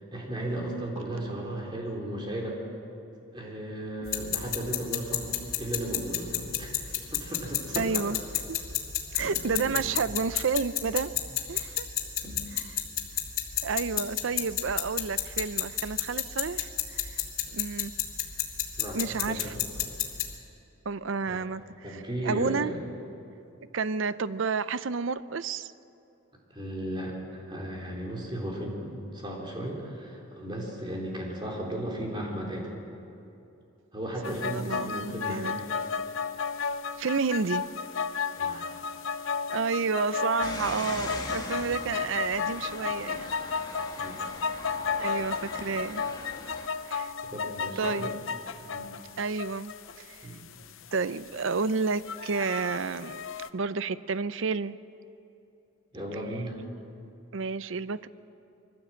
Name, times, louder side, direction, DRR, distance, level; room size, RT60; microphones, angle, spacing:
voice 1, 0.1-2.6 3.3-5.3 5.6-7.9 9.2-9.8 12.2-12.4 18.8-19.5 21.3-21.4 21.8-22.9 26.5-32.7 33.9-35.6 38.4-38.7 44.0-44.2 47.2-48.1 48.7-48.9 50.2-50.4 55.9-56.6, right 1 dB, 20° right, -2 dB, 3.8 m, -35 dB
sound 1, 4.0-20.3, left 11 dB, 85° left, 2.4 m, -32 dB
voice 2, 7.8-8.2 8.5-8.6 9.1-11.1 11.5-11.9 13.6-17.2 17.5-17.9 18.9-19.5 20.9-22.7 23.7-25.7 34.2-35.6 37.0-37.7 39.5-43.3 44.1-44.3 45.0-46.0 46.8-47.1 47.8-48.2 49.2-50.2 50.9-53.2 53.5-54.8 57.3-58.1, right 5 dB, 65° right, 15 dB, 0.6 m, -30 dB
sound 2, 34.2-53.5, left 5 dB, 70° left, 0.7 m, -33 dB
sound 3, 40.4-46.7, left 2 dB, 20° left, 1.6 m, -41 dB
23.0 x 15.0 x 7.6 m, 2.7 s
head